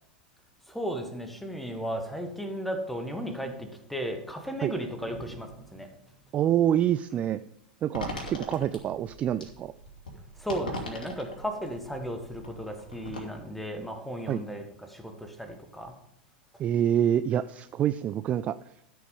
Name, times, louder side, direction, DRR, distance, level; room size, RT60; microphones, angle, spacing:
voice 1, 0.7-5.9 10.4-16.0 16.5-16.6, equal, ahead, 5 dB, 1.6 m, -35 dB
sound 1, 5.0-6.6, right 3 dB, 70° right, 3.0 m, -48 dB
voice 2, 6.3-7.4 7.8-9.7 14.3-14.4 16.6-18.7, right 10 dB, 25° right, 14 dB, 0.3 m, -26 dB
sound 2, 7.9-13.2, left 1 dB, 70° left, 2.8 m, -40 dB
13.0 x 6.2 x 5.4 m, 0.76 s
figure-of-eight pair, 85°, 5 cm